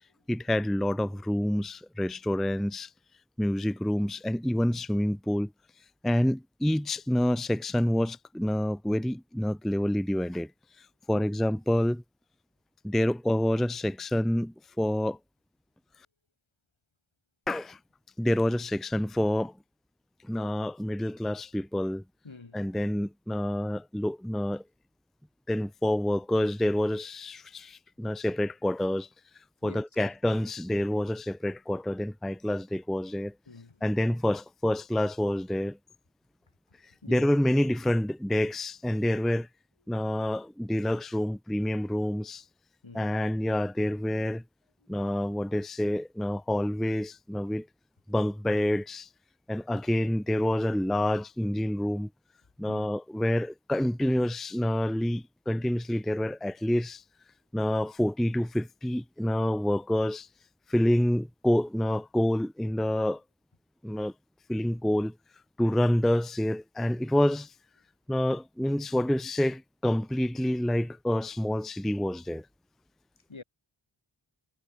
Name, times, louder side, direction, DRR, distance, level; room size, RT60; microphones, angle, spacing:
voice 1, 0.3-2.9 3.4-5.5 6.0-10.5 10.8-12.0 12.8-15.2 17.5-17.8 18.2-19.5 20.2-22.0 22.5-24.6 25.5-29.1 29.6-33.3 33.8-35.8 37.1-39.5 39.9-42.4 42.9-44.4 44.9-47.7 48.1-49.1 49.5-52.1 52.6-57.0 57.5-60.3 60.7-63.2 63.8-64.1 64.5-65.1 65.6-67.5 68.1-72.5, left 1 dB, ahead, 0.5 m, -28 dB
voice 2, 22.2-22.8 29.6-29.8 33.5-33.8 37.0-37.3 42.8-43.1 52.7-52.9 73.3-73.4, left 3 dB, 70° left, 3.8 m, -47 dB
wide cardioid pair, 45°, 48 cm